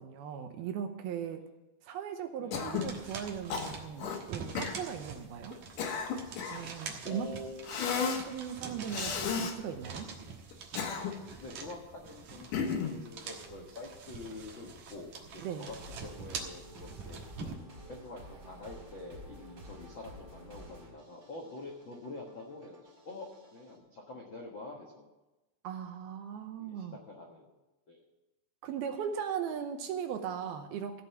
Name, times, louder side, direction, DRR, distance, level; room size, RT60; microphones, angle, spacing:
voice 1, 0.0-1.4 1.9-5.6 6.5-7.3 8.1-10.1 15.4-15.7 25.6-27.0 28.6-31.0, right 8 dB, 75° right, 6 dB, 2.5 m, -38 dB
Cough, 2.5-2.9 3.5-4.2 4.6-4.8 5.5-6.7 7.7-8.3 8.9-9.6 10.5-11.3 12.5-13.0, left 6 dB, 65° left, 2.4 m, -33 dB
sound 1, 2.5-17.5, right 5 dB, 60° right, 2.1 m, -45 dB
voice 2, 7.0-7.9 9.6-9.8 11.4-17.3 17.9-25.1 26.6-27.5 27.9-28.0, left 2 dB, 80° left, -1 dB, 1.0 m, -46 dB
sound 2, 15.7-23.8, equal, 25° right, 3.8 m, -51 dB
16.0 x 5.6 x 8.2 m, 1.0 s
omnidirectional pair, 4.9 m